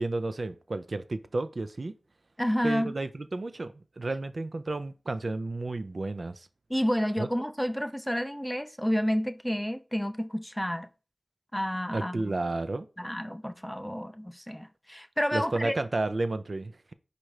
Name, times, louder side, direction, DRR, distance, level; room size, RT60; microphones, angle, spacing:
voice 1, 0.0-1.9 2.6-6.5 7.2-7.3 11.9-12.9 15.3-16.9, right 2 dB, 60° right, 0.4 m, -32 dB
voice 2, 2.4-2.9 6.7-10.9 11.5-12.4 13.0-15.7, equal, 5° left, 0.4 m, -30 dB
4.3 x 2.6 x 4.7 m
cardioid pair, 40°, 0 cm